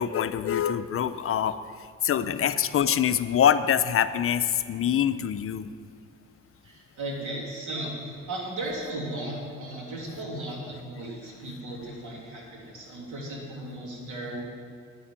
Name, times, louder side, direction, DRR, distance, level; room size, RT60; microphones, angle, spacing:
voice 1, 0.0-1.6 2.0-5.7, left 9 dB, 45° left, 12 dB, 0.5 m, -24 dB
voice 2, 6.6-7.9 8.3-14.4, right 1 dB, 80° right, -2 dB, 3.0 m, -36 dB
9.2 x 7.0 x 8.7 m, 2.1 s
cardioid pair, 90°, 30 cm